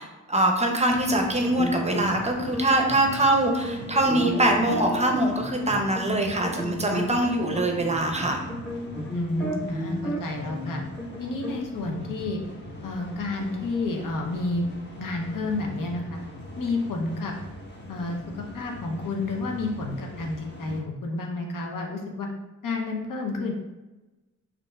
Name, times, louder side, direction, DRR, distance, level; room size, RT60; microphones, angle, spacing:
voice 1, 0.0-8.4, right 1 dB, 20° right, 2 dB, 0.6 m, -23 dB
sound 1, 0.9-20.8, left 1 dB, 35° left, 1.1 m, -42 dB
sound 2, 1.2-11.6, equal, 5° left, 1.1 m, -34 dB
voice 2, 9.0-10.8 11.2-12.4 12.8-14.6 15.0-16.2 16.6-17.3 17.9-22.3 22.6-23.5, left 2 dB, 80° left, 1 dB, 0.8 m, -30 dB
5.3 x 2.7 x 2.3 m, 1.1 s
cardioid pair, 95°, 32 cm